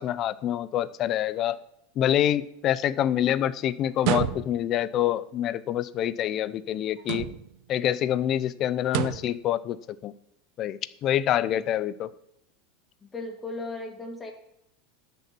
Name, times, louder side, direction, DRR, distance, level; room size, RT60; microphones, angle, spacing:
voice 1, 0.0-1.6 2.0-7.3 7.7-9.8 10.0-10.1 10.6-12.1, left 11 dB, 30° left, 16 dB, 0.5 m, -26 dB
sound 1, 4.0-4.8 7.0-7.6 8.8-9.4, right 13 dB, 50° right, 0.6 m, -29 dB
voice 2, 13.0-14.3, left 2 dB, 15° left, 3 dB, 2.0 m, -36 dB
12.5 x 6.8 x 6.1 m, 0.78 s
supercardioid pair, 165°, 0 cm